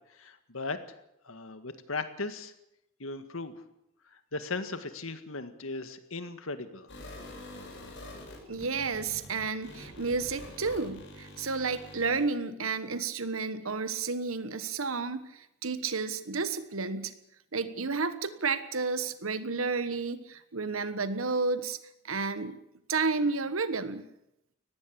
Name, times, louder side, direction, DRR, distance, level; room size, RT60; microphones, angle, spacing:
voice 1, 0.2-0.8 1.3-2.5 3.0-3.5 4.3-6.9, left 3 dB, 80° left, 10 dB, 1.9 m, -37 dB
sound 1, 6.9-12.2, left 1 dB, 60° left, 7.6 m, -46 dB
voice 2, 8.5-17.1 17.5-21.8 22.0-22.6 22.9-24.1, right 4 dB, 85° right, 12 dB, 1.3 m, -31 dB
19.5 x 15.5 x 8.7 m, 0.83 s
head